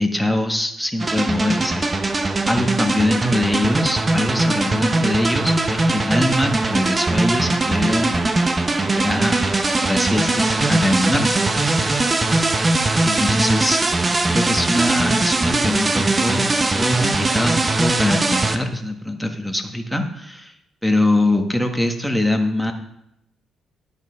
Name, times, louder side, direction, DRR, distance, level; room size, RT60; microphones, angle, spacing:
voice 1, 0.0-2.2 2.5-8.2 8.8-9.4 9.8-11.4 13.0-13.8 14.3-20.5 20.8-22.7, left 1 dB, ahead, 4 dB, 1.5 m, -22 dB
sound 1, 1.0-18.6, right 2 dB, 25° right, 1.0 m, -20 dB
10.5 x 7.3 x 5.8 m, 0.80 s
cardioid pair, 90°, 0 cm